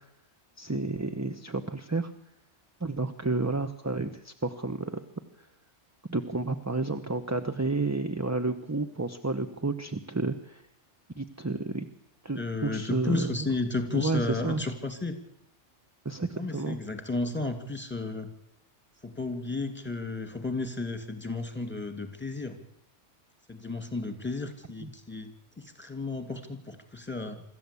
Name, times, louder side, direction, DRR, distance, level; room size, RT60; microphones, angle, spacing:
voice 1, 0.6-2.1 2.8-5.0 6.1-10.6 11.2-11.9 12.2-13.5 13.9-14.7 16.0-16.8 24.8-24.9, right 3 dB, 15° right, 7 dB, 0.9 m, -31 dB
voice 2, 12.4-15.2 16.4-18.3 19.0-22.6 23.5-25.3 25.6-27.4, left 3 dB, 10° left, 6 dB, 2.6 m, -33 dB
25.0 x 14.0 x 8.5 m, 0.79 s
omnidirectional pair, 1.2 m